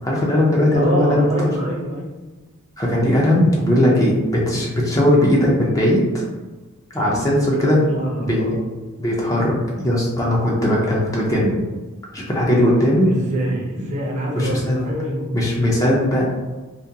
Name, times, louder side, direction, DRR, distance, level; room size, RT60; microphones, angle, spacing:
voice 1, 0.0-1.3 2.8-6.2 6.9-8.6 9.0-11.6 12.1-13.1 14.3-14.8 15.3-16.3, left 1 dB, 15° left, -4 dB, 0.4 m, -18 dB
voice 2, 0.7-2.1 6.9-7.3 7.6-8.6 12.5-12.6 13.0-15.3, right 1 dB, 35° right, -3 dB, 0.5 m, -26 dB
2.4 x 2.2 x 2.7 m, 1.2 s
head